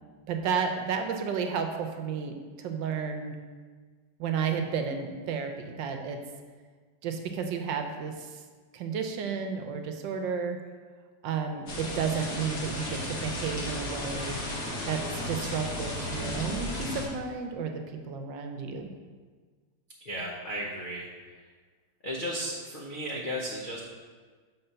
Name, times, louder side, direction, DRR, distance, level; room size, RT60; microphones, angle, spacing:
voice 1, 0.3-3.3 4.2-6.2 7.0-8.4 8.7-10.6 11.2-14.4 14.9-15.0 15.3-17.8 18.1-18.9, right 6 dB, 75° right, 5 dB, 1.3 m, -32 dB
sound 1, 11.7-17.1, left 1 dB, 50° left, 1.5 m, -34 dB
voice 2, 20.0-21.1 22.0-23.8, equal, 85° left, -3 dB, 0.4 m, -34 dB
6.8 x 3.8 x 5.5 m, 1.5 s
omnidirectional pair, 2.1 m